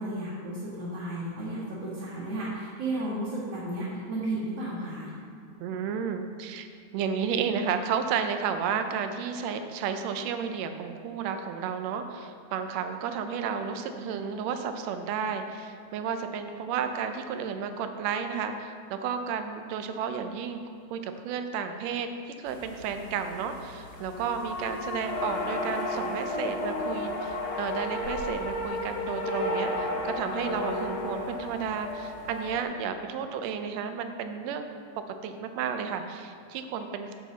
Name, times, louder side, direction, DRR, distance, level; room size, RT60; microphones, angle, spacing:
voice 1, 0.0-5.1, right 1 dB, 55° right, -13 dB, 3.1 m, -33 dB
voice 2, 5.6-6.7 6.9-20.6 20.9-34.6 35.2-37.1, right 6 dB, 75° right, 7 dB, 1.6 m, -32 dB
sound 1, 22.5-32.6, left 2 dB, 60° left, 2.4 m, -33 dB
9.1 x 7.9 x 4.0 m, 2.3 s
omnidirectional pair, 3.5 m